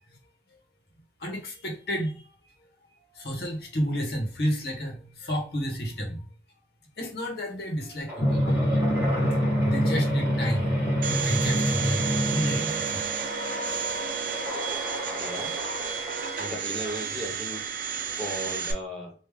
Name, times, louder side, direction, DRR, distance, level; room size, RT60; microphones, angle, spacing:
voice 1, 1.2-2.2 3.1-6.2 7.0-8.5 9.6-10.8 11.1-12.1 12.3-13.0, equal, 65° left, 1 dB, 1.1 m, -31 dB
sound 1, 8.1-16.8, equal, 10° right, 1.8 m, -36 dB
Drum, 8.2-13.3, equal, 40° left, 0.7 m, -25 dB
Domestic sounds home sounds, 11.0-18.7, right 7 dB, 50° right, 0.6 m, -32 dB
voice 2, 15.2-15.5 15.9-16.0 16.4-17.6 18.2-19.1, equal, 5° left, -2 dB, 0.9 m, -36 dB
3.6 x 2.6 x 3.2 m, 0.40 s
head